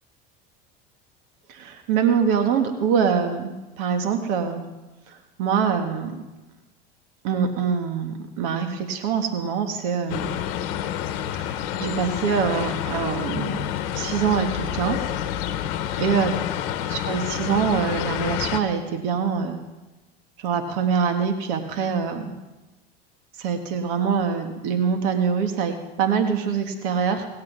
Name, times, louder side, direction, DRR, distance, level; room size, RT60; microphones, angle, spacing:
voice 1, 1.5-4.6 5.1-6.2 7.2-10.3 11.4-13.6 13.9-15.0 16.0-16.4 16.9-19.6 20.4-22.3 23.4-27.3, right 6 dB, 65° right, 6 dB, 1.6 m, -24 dB
sound 1, 10.1-18.6, left 10 dB, 65° left, 1.0 m, -28 dB
18.5 x 7.6 x 6.0 m, 1.1 s
hypercardioid pair, 80°, 29 cm